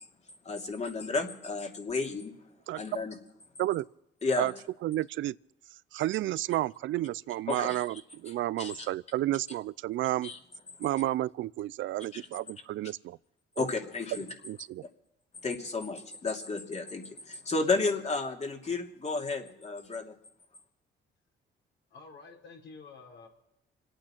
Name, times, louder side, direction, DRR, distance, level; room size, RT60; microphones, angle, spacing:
voice 1, 0.4-2.3 2.8-3.2 4.2-4.5 7.5-7.8 8.6-8.9 10.2-10.4 12.1-12.2 13.6-14.3 15.4-20.1, left 3 dB, 35° left, 2.8 m, -32 dB
voice 2, 4.8-5.3 5.9-10.3 10.8-13.2 14.5-14.8, right 15 dB, 75° right, 0.5 m, -31 dB
voice 3, 21.9-23.3, left 4 dB, 65° left, 5.1 m, -49 dB
27.0 x 9.0 x 5.9 m
cardioid pair, 90°, 20 cm